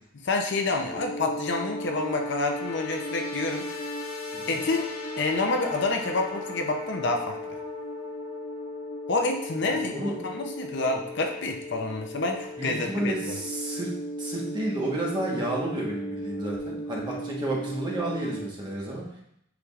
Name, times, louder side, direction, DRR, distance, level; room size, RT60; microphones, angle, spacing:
voice 1, 0.2-3.9 4.5-7.4 9.1-13.3, left 3 dB, 55° left, 3 dB, 0.6 m, -28 dB
sound 1, 0.8-18.5, equal, 90° left, 1.3 m, -36 dB
voice 2, 9.7-10.2 12.6-13.9 14.2-19.0, right 1 dB, 20° right, -4 dB, 1.2 m, -31 dB
8.2 x 4.9 x 2.4 m, 0.77 s
head